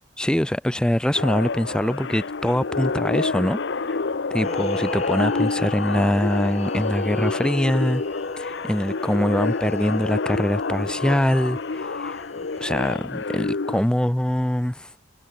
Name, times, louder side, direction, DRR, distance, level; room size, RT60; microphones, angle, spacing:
voice 1, 0.2-4.0 4.3-8.0 8.4-12.2 12.6-14.9, equal, 5° left, 0.4 m, -23 dB
sound 1, 1.1-13.8, left 4 dB, 60° left, 0.7 m, -28 dB
sound 2, 4.3-12.9, left 2 dB, 35° left, 2.8 m, -35 dB
head